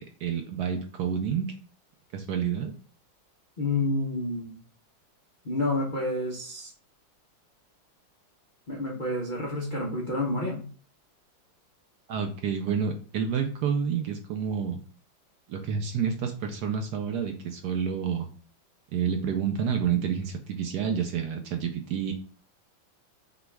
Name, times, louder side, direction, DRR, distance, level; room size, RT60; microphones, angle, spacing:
voice 1, 0.0-1.5 2.1-2.7 12.1-14.8 15.5-18.3 18.9-22.1, right 7 dB, 75° right, 4 dB, 1.0 m, -29 dB
voice 2, 3.6-4.6 5.4-6.7 8.7-10.6, left 2 dB, 65° left, -3 dB, 0.4 m, -29 dB
6.0 x 2.3 x 3.4 m, 0.40 s
omnidirectional pair, 2.2 m